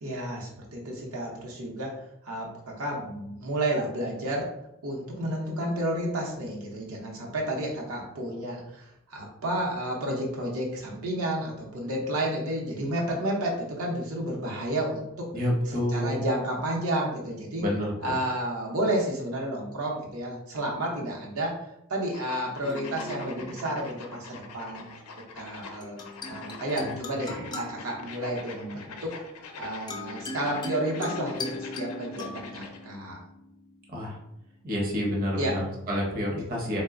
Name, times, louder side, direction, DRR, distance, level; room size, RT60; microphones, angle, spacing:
voice 1, 0.0-2.0 2.2-4.5 4.8-15.3 15.9-17.6 18.0-24.9 25.3-26.0 26.3-29.1 29.6-33.2 35.4-35.6, right 1 dB, 75° right, -2 dB, 0.7 m, -31 dB
voice 2, 15.3-16.2 17.6-17.9 26.8-26.9 33.9-34.2 34.6-36.8, equal, 40° right, -3 dB, 0.7 m, -28 dB
sound 1, 22.1-32.9, left 4 dB, 80° left, 0.5 m, -45 dB
sound 2, 22.6-24.4 25.8-34.3, left 2 dB, 20° left, 0.3 m, -40 dB
3.1 x 2.0 x 3.6 m, 0.82 s
head